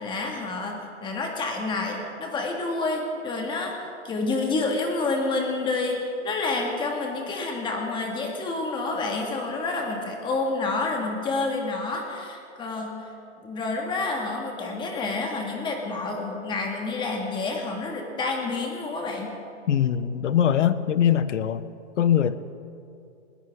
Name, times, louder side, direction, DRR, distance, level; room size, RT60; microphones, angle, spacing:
voice 1, 0.0-13.0 13.4-19.3, left 3 dB, 15° left, 1 dB, 1.8 m, -29 dB
voice 2, 19.7-21.6 22.0-22.4, left 9 dB, 75° left, 14 dB, 1.0 m, -22 dB
20.0 x 19.5 x 3.6 m, 2.6 s
hypercardioid pair, 155°, 37 cm